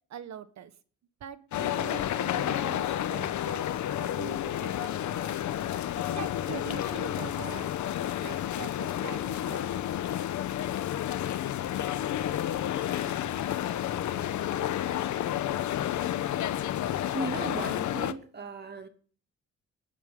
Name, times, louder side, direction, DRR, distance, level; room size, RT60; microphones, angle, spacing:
voice 1, 0.1-0.7 1.2-3.7 4.0-5.2 5.5-7.7 8.2-9.8, right 9 dB, 65° right, 1.5 m, -43 dB
sound 1, 1.5-18.1, left 11 dB, 75° left, 1.1 m, -31 dB
voice 2, 17.1-18.9, right 4 dB, 35° right, 2.7 m, -36 dB
21.0 x 10.0 x 3.8 m
cardioid pair, 90°, 30 cm